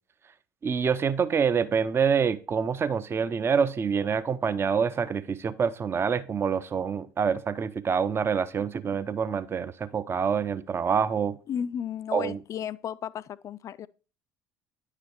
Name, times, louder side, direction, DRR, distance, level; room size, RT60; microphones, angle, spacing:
voice 1, 0.6-11.4 12.1-12.4, right 6 dB, 30° right, 0.5 m, -26 dB
voice 2, 11.5-13.9, left 8 dB, 40° left, 0.3 m, -34 dB
9.3 x 4.9 x 3.0 m
hypercardioid pair, 65°, 9 cm